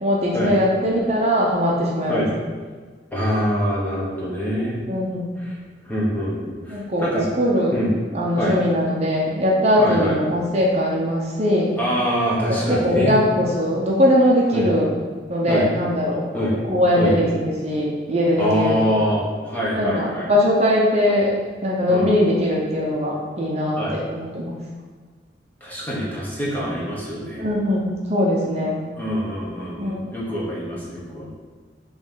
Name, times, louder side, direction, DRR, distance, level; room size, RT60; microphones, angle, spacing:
voice 1, 0.0-2.3 4.9-5.3 6.7-7.0 7.4-7.7 8.1-11.7 12.3-14.9 15.3-16.2 16.7-18.8 19.7-21.3 21.6-24.5 27.4-28.8 29.8-30.0, equal, 35° right, -4 dB, 0.8 m, -20 dB
voice 2, 3.1-4.8 5.4-5.6 5.9-7.3 7.7-7.9 8.3-8.6 9.8-10.2 11.8-13.2 14.5-14.7 15.5-15.7 16.3-16.6 17.0-17.2 18.4-20.3 21.9-22.1 23.8-24.0 25.6-27.4 29.0-31.3, equal, 10° left, -6 dB, 1.3 m, -24 dB
5.7 x 3.2 x 5.6 m, 1.5 s
head